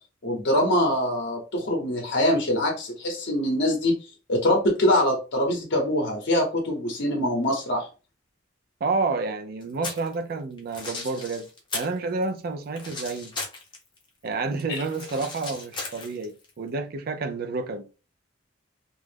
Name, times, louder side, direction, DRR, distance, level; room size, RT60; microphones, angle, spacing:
voice 1, 0.2-4.0 4.3-7.9 14.7-14.8, left 1 dB, 60° left, 0.7 m, -24 dB
voice 2, 8.8-11.5 11.7-13.3 14.2-17.9, right 3 dB, 50° right, 0.4 m, -29 dB
sound 1, 9.6-10.1 10.6-12.0 12.2-14.0 14.3-16.5, left 3 dB, 25° left, 0.6 m, -36 dB
2.3 x 2.0 x 3.2 m
head